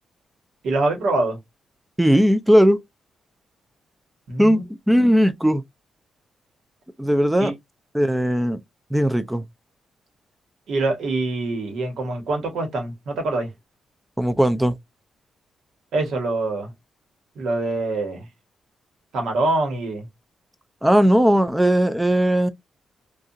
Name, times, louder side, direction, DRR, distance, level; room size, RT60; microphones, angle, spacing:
voice 1, 0.6-1.4 4.3-4.6 4.9-5.1 7.4-7.5 10.7-13.5 15.9-16.7 17.3-18.3 19.1-20.1, right 2 dB, 70° right, 1.2 m, -24 dB
voice 2, 2.0-2.8 4.4-4.6 4.9-5.6 7.0-7.5 7.9-8.6 8.9-9.4 14.2-14.8 20.8-22.5, equal, 5° right, 0.3 m, -18 dB
2.7 x 2.4 x 2.5 m
wide cardioid pair, 160°, 0 cm